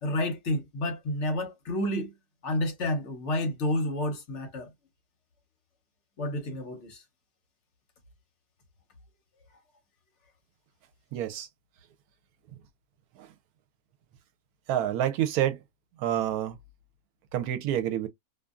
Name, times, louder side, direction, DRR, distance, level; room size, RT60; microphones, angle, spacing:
voice 1, 0.0-2.1 2.4-4.7 6.2-7.0, left 1 dB, 60° left, 0.9 m, -30 dB
voice 2, 11.1-11.5 13.2-13.3 14.7-15.6 16.0-16.6 17.3-18.1, right 11 dB, 85° right, 1.1 m, -28 dB
2.5 x 2.5 x 2.3 m
omnidirectional pair, 1.6 m